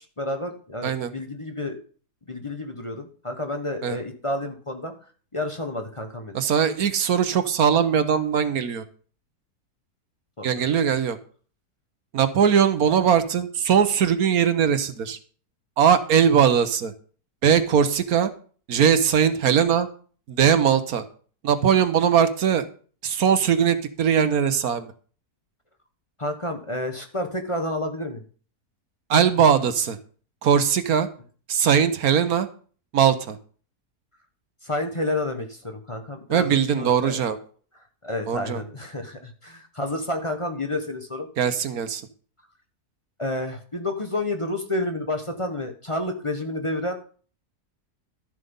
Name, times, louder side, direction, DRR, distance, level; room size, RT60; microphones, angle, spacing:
voice 1, 0.0-1.8 2.3-4.9 5.3-6.4 10.4-10.7 26.2-28.2 34.6-37.2 38.0-41.3 43.2-47.0, left 1 dB, 20° left, 5 dB, 1.1 m, -30 dB
voice 2, 6.3-8.8 10.4-11.2 12.1-15.2 15.8-16.9 17.4-18.3 18.7-19.9 20.3-21.0 21.4-22.7 23.0-24.9 29.1-30.0 30.4-31.1 31.5-32.5 32.9-33.4 36.3-37.4 38.3-38.6 41.4-42.0, right 8 dB, 65° right, 11 dB, 1.4 m, -20 dB
12.5 x 7.6 x 5.4 m, 0.42 s
omnidirectional pair, 1.7 m